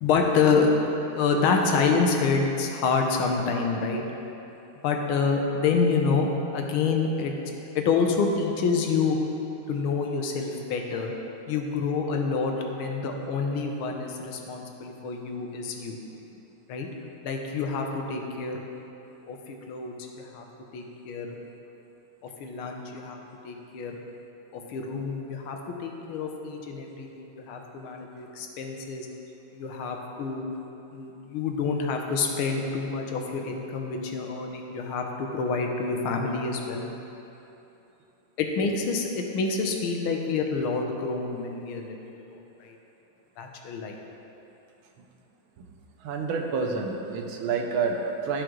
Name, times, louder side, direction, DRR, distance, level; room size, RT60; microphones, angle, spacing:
voice 1, 0.0-0.8 1.1-4.0 4.8-7.3 7.7-9.3 9.7-11.1 11.5-16.0 16.7-16.9 17.2-18.6 19.3-20.4 20.7-21.3 22.4-23.2 23.4-24.0 24.5-29.1 29.5-30.4 30.9-36.9 38.4-42.8 43.4-43.9, left 4 dB, 90° left, 2 dB, 1.6 m, -27 dB
voice 2, 46.0-48.4, right 5 dB, 80° right, 2 dB, 1.5 m, -28 dB
13.0 x 5.0 x 3.0 m, 3.0 s
omnidirectional pair, 2.3 m